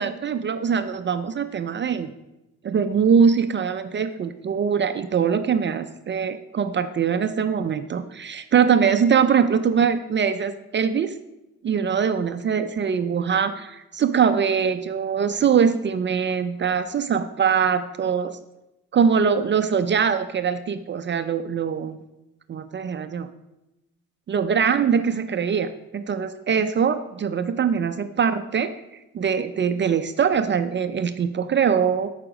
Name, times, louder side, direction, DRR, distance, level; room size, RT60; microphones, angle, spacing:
voice 1, 0.0-2.1 2.6-11.2 11.6-18.4 18.9-22.0 22.5-23.3 24.3-28.7 29.1-32.1, right 7 dB, 40° right, 10 dB, 0.5 m, -22 dB
8.3 x 4.9 x 6.1 m, 0.95 s
cardioid pair, 90°, 30 cm